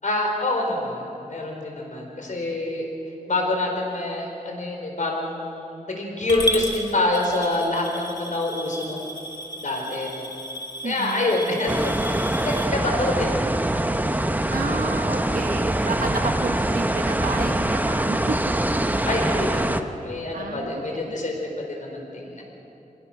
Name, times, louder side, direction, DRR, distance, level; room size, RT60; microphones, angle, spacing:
voice 1, 0.0-2.9 3.3-9.0 9.6-10.3 10.8-13.4 19.0-21.4 21.7-22.4, left 2 dB, 65° left, 1 dB, 4.6 m, -26 dB
Coin (dropping) / Glass, 6.3-12.6, equal, 30° left, 2.3 m, -33 dB
voice 2, 10.8-11.3 14.5-18.4 20.3-21.1, right 4 dB, 85° right, 4 dB, 1.4 m, -31 dB
sound 1, 11.7-19.8, right 1 dB, 10° right, 0.9 m, -24 dB
23.5 x 20.0 x 6.2 m, 2.8 s
wide cardioid pair, 80°, 14 cm